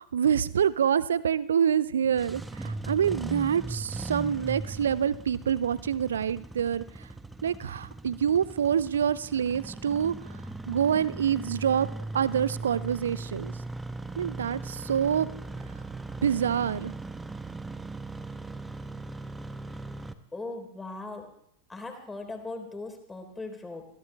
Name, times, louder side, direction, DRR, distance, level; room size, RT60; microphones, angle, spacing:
voice 1, 0.0-7.1 7.4-10.1 10.7-11.9 12.1-13.5 14.2-15.3 16.2-16.9, right 8 dB, 65° right, 19 dB, 0.5 m, -26 dB
Engine starting, 2.0-20.1, right 3 dB, 10° right, 1.1 m, -39 dB
voice 2, 20.3-21.3 21.7-23.9, left 2 dB, 10° left, 4 dB, 3.6 m, -39 dB
21.5 x 17.5 x 3.4 m, 0.73 s
figure-of-eight pair, 90°, 0 cm